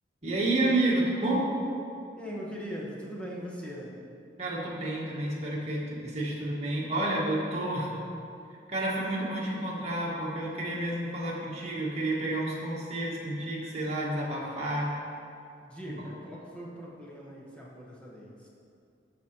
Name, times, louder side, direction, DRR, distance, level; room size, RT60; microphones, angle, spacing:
voice 1, 0.2-1.5 4.4-7.9 8.7-14.9 16.0-16.1, right 1 dB, 40° right, -6 dB, 1.6 m, -30 dB
voice 2, 2.2-3.9 15.6-18.5, equal, 5° left, -5 dB, 1.3 m, -41 dB
13.0 x 5.1 x 3.0 m, 2.5 s
head